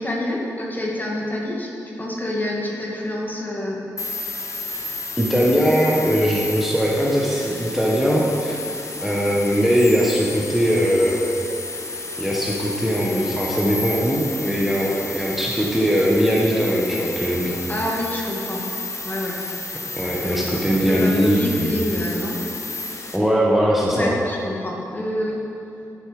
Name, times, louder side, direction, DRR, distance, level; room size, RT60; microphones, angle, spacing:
voice 1, 0.0-3.8 17.7-18.6 19.0-19.4 20.2-22.4 23.9-25.4, left 1 dB, 25° left, -3 dB, 2.1 m, -27 dB
sound 1, 4.0-23.2, left 3 dB, 45° left, 1.1 m, -32 dB
voice 2, 5.2-8.6 9.0-11.2 12.2-17.6 20.0-21.7 23.1-24.1, equal, 5° right, -4 dB, 1.5 m, -20 dB
11.5 x 5.4 x 5.1 m, 2.9 s
supercardioid pair, 40°, 7 cm